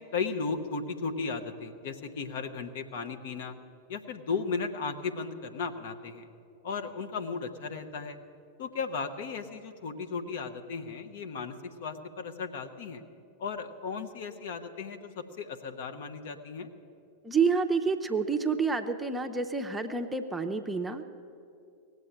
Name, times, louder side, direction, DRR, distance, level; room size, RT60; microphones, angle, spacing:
voice 1, 0.0-3.6 3.9-6.3 6.6-8.2 8.6-13.0 13.4-16.7, left 5 dB, 55° left, 7 dB, 1.1 m, -35 dB
voice 2, 17.2-21.1, right 5 dB, 10° right, 6 dB, 0.8 m, -28 dB
18.0 x 8.0 x 9.9 m, 2.5 s
figure-of-eight pair, 90°, 0 cm